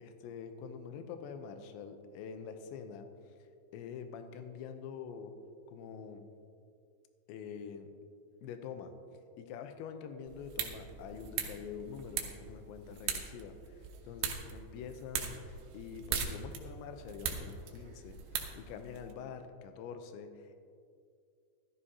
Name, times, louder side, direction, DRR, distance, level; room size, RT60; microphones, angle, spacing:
voice 1, 0.0-3.1 3.7-5.3 5.7-6.3 7.3-7.9 8.4-8.9 9.4-20.6, left 6 dB, 80° left, 7 dB, 3.0 m, -46 dB
sound 1, 10.3-19.1, right 7 dB, 70° right, 2.5 m, -40 dB
15.0 x 13.5 x 2.8 m, 2.4 s
omnidirectional pair, 5.4 m